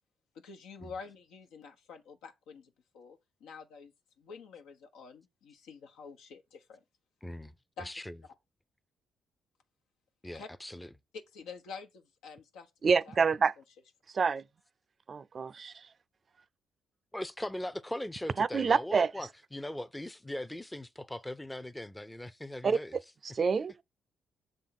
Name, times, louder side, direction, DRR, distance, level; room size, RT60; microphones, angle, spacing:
voice 1, 0.3-6.8 7.8-7.9 10.3-10.5 11.1-12.7 13.0-13.2, left 5 dB, 90° left, 1.2 m, -48 dB
voice 2, 7.2-7.5 7.8-8.2 10.2-10.9 17.1-23.0, left 1 dB, 10° left, 0.5 m, -40 dB
voice 3, 12.8-13.5 14.1-14.4 15.1-15.7 18.4-19.1 22.6-22.8 23.2-23.8, right 5 dB, 40° right, 0.4 m, -27 dB
7.0 x 3.7 x 5.9 m
cardioid pair, 90°, 0 cm